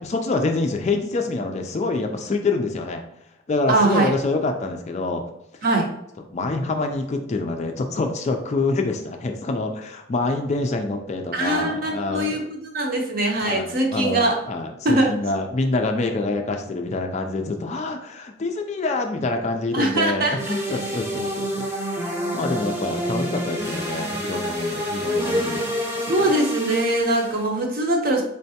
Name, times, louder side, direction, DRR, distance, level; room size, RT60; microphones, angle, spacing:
voice 1, 0.0-3.0 3.5-5.2 6.3-12.3 13.4-21.7 22.3-26.3, left 3 dB, 35° left, 4 dB, 0.3 m, -26 dB
voice 2, 3.7-4.1 5.6-5.9 11.3-14.4 14.8-15.2 19.7-20.4 26.1-28.2, right 2 dB, 45° right, 0 dB, 0.8 m, -22 dB
sound 1, 20.4-27.5, equal, 10° right, 0.7 m, -28 dB
3.7 x 3.3 x 2.8 m, 0.82 s
head